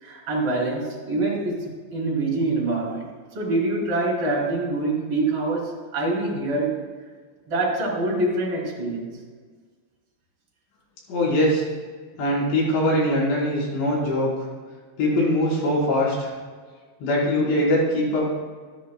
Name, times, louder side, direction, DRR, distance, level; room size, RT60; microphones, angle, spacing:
voice 1, 0.0-3.0 3.3-6.8 7.5-9.1, right 2 dB, 30° right, -4 dB, 4.6 m, -25 dB
voice 2, 11.1-11.6 12.2-14.5 15.0-16.3 17.0-18.2, left 1 dB, 65° left, -6 dB, 6.6 m, -22 dB
25.5 x 11.0 x 2.3 m, 1.5 s
omnidirectional pair, 5.6 m